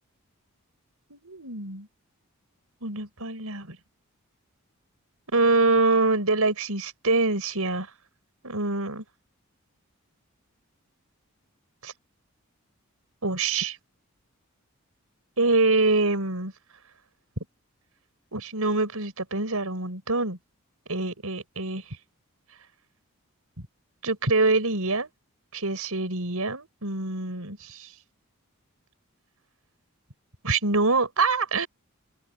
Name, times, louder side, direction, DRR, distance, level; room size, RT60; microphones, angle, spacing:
voice 1, 1.1-1.9 2.8-3.8 5.3-7.9 8.4-9.0 11.8-11.9 13.2-13.8 15.4-16.5 18.3-20.4 20.9-21.8 24.0-25.1 25.5-27.9 30.4-31.7, right 3 dB, 80° right, 5.2 m, -25 dB
open air
head